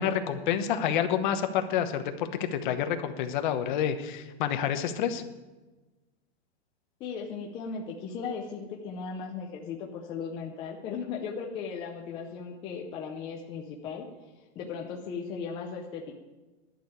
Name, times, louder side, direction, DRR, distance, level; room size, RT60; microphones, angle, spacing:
voice 1, 0.0-5.2, left 9 dB, 45° left, 8 dB, 1.1 m, -28 dB
voice 2, 7.0-14.1 14.4-16.1, left 5 dB, 15° left, 0 dB, 0.5 m, -37 dB
11.5 x 6.7 x 9.2 m, 1.2 s
supercardioid pair, 170°, 34 cm